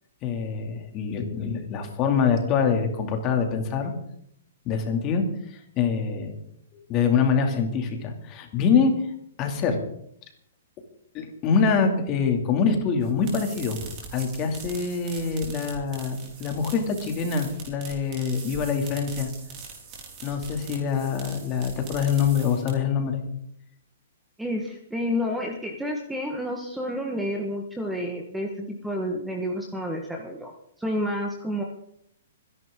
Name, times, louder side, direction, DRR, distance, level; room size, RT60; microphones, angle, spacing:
voice 1, 0.2-3.9 4.6-5.2 5.5-6.3 6.7-9.0 9.4-9.8 11.1-13.8 14.1-19.3 20.2-23.2, left 6 dB, 25° left, 4 dB, 2.6 m, -25 dB
sound 1, 13.0-23.0, right 5 dB, 30° right, 5.0 m, -42 dB
voice 2, 24.4-30.5 30.8-31.6, equal, 5° right, 1 dB, 1.5 m, -30 dB
25.5 x 11.0 x 3.8 m, 0.70 s
hypercardioid pair, 155°, 0 cm